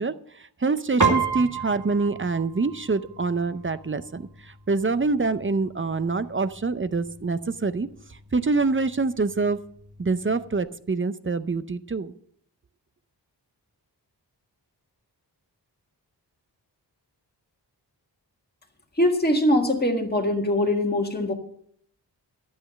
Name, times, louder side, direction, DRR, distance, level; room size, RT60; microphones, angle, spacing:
voice 1, 0.0-9.6 10.0-12.1, right 3 dB, 30° right, 14 dB, 0.6 m, -26 dB
Piano, 1.0-10.6, right 5 dB, 45° right, 2.0 m, -33 dB
voice 2, 19.0-21.3, left 1 dB, 25° left, 2 dB, 1.7 m, -22 dB
12.0 x 8.1 x 6.3 m, 0.66 s
wide cardioid pair, 85°, 41 cm